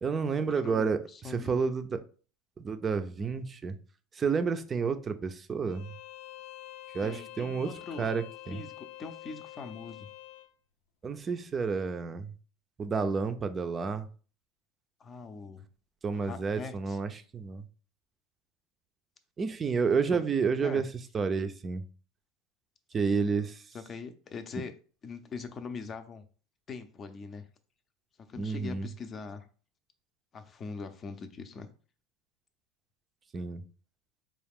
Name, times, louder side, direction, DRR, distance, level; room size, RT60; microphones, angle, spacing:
voice 1, 0.0-2.0 2.6-3.8 4.1-5.9 6.9-7.7 8.0-8.6 11.0-12.3 12.8-14.1 16.0-17.7 19.4-20.9 21.1-21.8 22.9-23.6 28.4-28.9 33.3-33.6, right 5 dB, 25° right, 9 dB, 0.5 m, -30 dB
voice 2, 0.5-1.6 7.0-8.1 8.5-10.1 15.0-15.6 16.1-17.0 20.1-20.2 20.6-20.8 23.1-23.3 23.7-24.7 25.0-26.2 26.7-27.5 28.2-29.5 30.3-31.7, left 4 dB, 30° left, 8 dB, 0.6 m, -42 dB
Bowed string instrument, 5.7-10.5, left 16 dB, 70° left, 0.6 m, -47 dB
4.7 x 2.4 x 3.5 m, 0.39 s
supercardioid pair, 115°, 0 cm